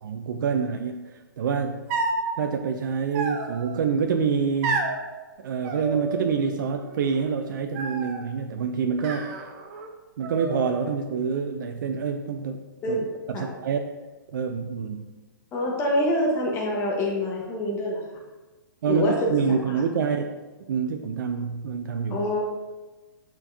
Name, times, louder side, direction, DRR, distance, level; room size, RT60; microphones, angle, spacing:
voice 1, 0.0-1.8 2.4-4.9 5.4-9.5 10.2-13.0 13.3-13.8 14.3-15.1 18.8-20.3 20.7-22.2, right 6 dB, 65° right, 5 dB, 0.5 m, -27 dB
sound 1, 1.9-2.3 3.1-3.8 4.6-5.0 5.6-6.5 6.7-7.3 7.7-8.3 9.0-9.9 10.2-11.0, right 3 dB, 40° right, 0.8 m, -30 dB
voice 2, 15.5-18.0 18.9-19.1 22.1-22.4, left 1 dB, 25° left, -1 dB, 1.1 m, -25 dB
7.8 x 4.4 x 2.7 m, 1.2 s
hypercardioid pair, 130°, 11 cm